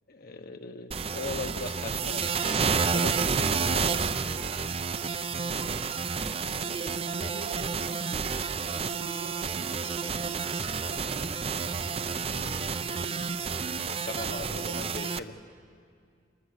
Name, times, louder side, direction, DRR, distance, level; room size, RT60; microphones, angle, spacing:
voice 1, 0.1-2.3 2.9-4.1 14.1-15.4, left 3 dB, 55° left, 7 dB, 1.1 m, -39 dB
sound 1, 0.9-15.2, right 5 dB, 35° right, 0.6 m, -30 dB
voice 2, 4.6-6.0 6.4-13.3, right 1 dB, 75° right, 3 dB, 5.2 m, -46 dB
28.5 x 21.0 x 8.1 m, 2.3 s
head